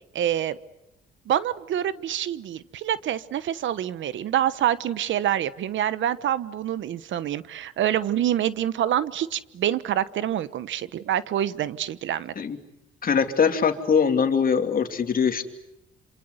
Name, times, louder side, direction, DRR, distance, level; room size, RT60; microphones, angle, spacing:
voice 1, 0.1-0.6 1.3-12.3, right 11 dB, 70° right, 16 dB, 1.1 m, -26 dB
voice 2, 13.0-15.4, left 6 dB, 45° left, 6 dB, 2.9 m, -22 dB
27.5 x 27.0 x 8.0 m, 0.89 s
cardioid pair, 90°, 20 cm